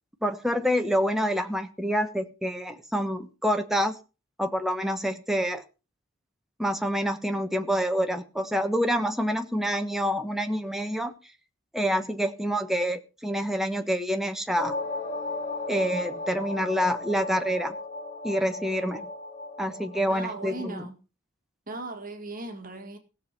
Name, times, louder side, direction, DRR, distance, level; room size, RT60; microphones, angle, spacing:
voice 1, 0.2-4.0 4.4-5.6 6.6-11.1 11.7-14.8 15.7-17.7 18.2-19.1 19.6-20.7, equal, ahead, 1.2 m, -27 dB
sound 1, 14.6-20.8, left 2 dB, 40° left, 2.8 m, -35 dB
voice 2, 20.1-21.0 21.7-23.0, right 2 dB, 40° right, 2.1 m, -37 dB
17.0 x 7.3 x 5.7 m
head